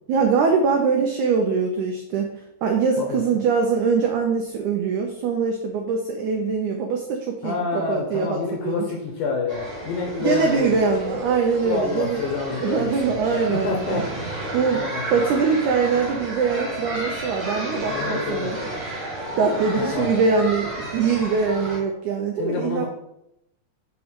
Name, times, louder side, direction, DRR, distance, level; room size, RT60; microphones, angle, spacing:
voice 1, 0.1-2.3 2.6-8.8 10.2-12.2 12.6-14.0 14.5-14.8 15.1-18.6 19.4-22.9, right 5 dB, 90° right, 3 dB, 1.7 m, -23 dB
voice 2, 7.4-10.9 11.6-15.2 17.9-18.5 19.8-20.1 22.4-22.9, left 4 dB, 70° left, 1 dB, 2.0 m, -28 dB
sound 1, 9.5-21.8, right 1 dB, 45° right, 2.5 m, -32 dB
6.1 x 3.8 x 6.1 m, 0.81 s
omnidirectional pair, 4.3 m